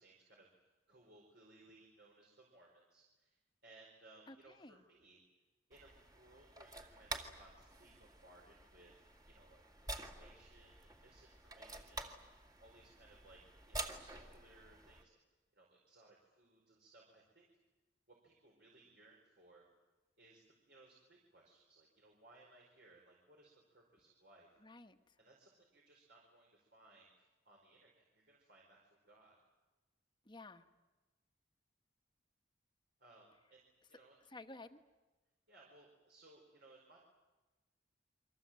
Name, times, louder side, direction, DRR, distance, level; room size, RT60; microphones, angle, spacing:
voice 1, 0.0-3.4 3.6-5.2 5.7-12.2 12.6-13.4 13.7-15.2 15.5-17.5 18.1-19.6 20.2-24.5 25.2-29.4 33.0-34.2 35.5-37.0, right 2 dB, 65° right, -2 dB, 4.9 m, -64 dB
voice 2, 4.3-4.8 24.6-25.2 30.2-30.7 34.3-34.8, left 2 dB, 25° left, 7 dB, 1.3 m, -54 dB
sound 1, 5.7-15.0, right 2 dB, 20° right, 2.0 m, -49 dB
29.5 x 24.0 x 7.7 m, 1.2 s
head